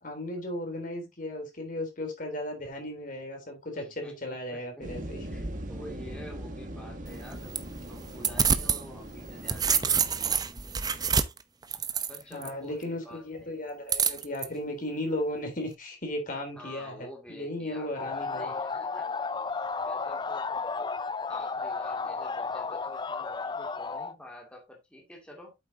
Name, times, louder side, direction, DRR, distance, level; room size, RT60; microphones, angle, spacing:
voice 1, 0.0-5.2 12.3-18.5, left 1 dB, 45° left, 3.5 m, -35 dB
voice 2, 3.7-4.9 5.2-10.1 12.1-13.5 16.5-19.4 19.8-20.5 21.3-25.5, left 1 dB, 5° left, 2.4 m, -49 dB
sound 1, 4.8-10.3, right 1 dB, 45° right, 1.8 m, -40 dB
sound 2, 7.1-8.8 9.2-12.5 13.9-14.5, right 6 dB, 20° right, 0.7 m, -27 dB
sound 3, 18.0-24.1, left 4 dB, 25° left, 0.4 m, -33 dB
8.8 x 7.6 x 2.8 m
head